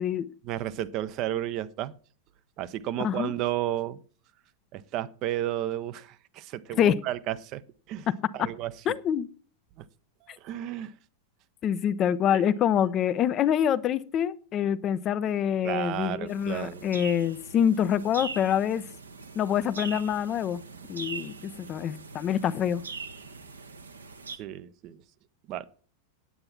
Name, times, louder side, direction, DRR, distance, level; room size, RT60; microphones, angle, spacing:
voice 1, 0.4-1.9 2.6-4.0 4.7-7.6 7.9-8.1 8.3-8.7 10.4-10.9 12.3-12.4 15.6-16.8 24.4-25.0 25.5-25.7, right 13 dB, 40° right, 14 dB, 0.6 m, -32 dB
voice 2, 8.1-8.5 8.9-9.3 10.3-10.4 11.6-18.8 19.4-20.6 20.9-22.8, left 9 dB, 30° left, 15 dB, 0.5 m, -26 dB
sound 1, 16.3-24.4, right 4 dB, 75° right, 1.1 m, -42 dB
9.4 x 8.7 x 5.9 m, 0.43 s
figure-of-eight pair, 90°, 0 cm